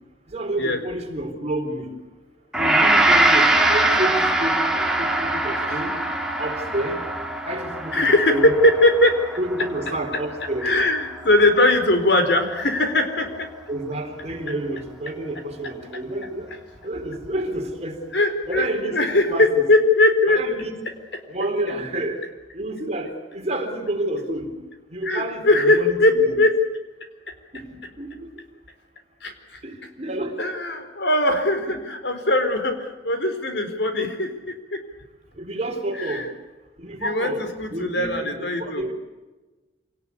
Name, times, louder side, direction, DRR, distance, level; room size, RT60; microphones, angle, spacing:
voice 1, 0.3-1.9 2.6-6.0 6.4-7.0 7.4-8.5 9.4-10.7 13.7-16.5 16.8-18.0 18.5-19.0 19.3-19.6 20.3-20.8 21.3-22.2 22.5-24.5 24.9-26.4 27.5-28.3 29.6-30.4 31.7-31.8 35.4-36.3 36.8-37.4 37.7-38.9, right 1 dB, 40° right, 3 dB, 3.9 m, -29 dB
Gong, 2.5-11.7, right 2 dB, 5° right, 2.5 m, -22 dB
voice 2, 7.9-9.2 10.6-13.5 18.1-20.4 25.0-26.5 29.2-29.3 30.4-34.8 36.1-36.3 37.0-38.9, left 1 dB, 70° left, 7 dB, 4.1 m, -20 dB
26.5 x 18.5 x 8.4 m, 1.2 s
head